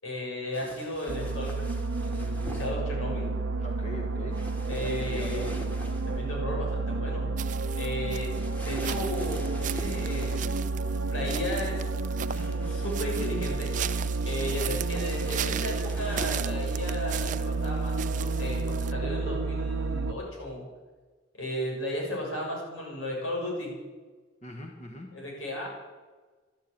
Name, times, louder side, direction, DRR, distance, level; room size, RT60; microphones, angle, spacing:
voice 1, 0.0-1.7 2.0-3.3 4.7-5.5 6.0-7.3 7.8-8.3 8.6-10.5 11.1-11.8 12.3-13.7 14.3-20.6 21.4-23.7 25.1-25.7, left 1 dB, 85° left, -2 dB, 7.1 m, -35 dB
sound 1, 0.5-2.7 4.3-6.2 8.3-10.6 12.3-16.4, equal, 10° left, 1.8 m, -44 dB
sound 2, 1.1-20.1, right 3 dB, 75° right, 0.8 m, -30 dB
voice 2, 3.6-4.4 4.8-5.6 24.4-25.2, left 1 dB, 35° left, 2 dB, 1.4 m, -41 dB
sound 3, 7.4-18.9, right 10 dB, 40° right, 0.4 m, -38 dB
13.0 x 12.0 x 8.6 m, 1.3 s
head